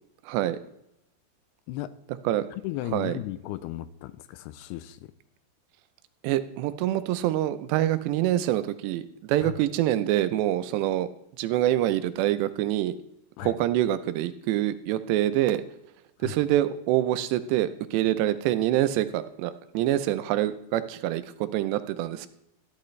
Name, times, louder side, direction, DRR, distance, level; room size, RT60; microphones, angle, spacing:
voice 1, 0.3-0.6 2.3-2.5 2.9-3.2 6.2-11.1 11.4-13.0 13.4-15.6 16.2-21.2 21.5-22.3, right 13 dB, 85° right, 13 dB, 2.9 m, -25 dB
voice 2, 2.5-5.1 9.4-9.5 13.4-13.6 16.2-16.4, left 15 dB, 80° left, 14 dB, 2.5 m, -35 dB
14.0 x 11.5 x 3.2 m, 0.80 s
omnidirectional pair, 4.9 m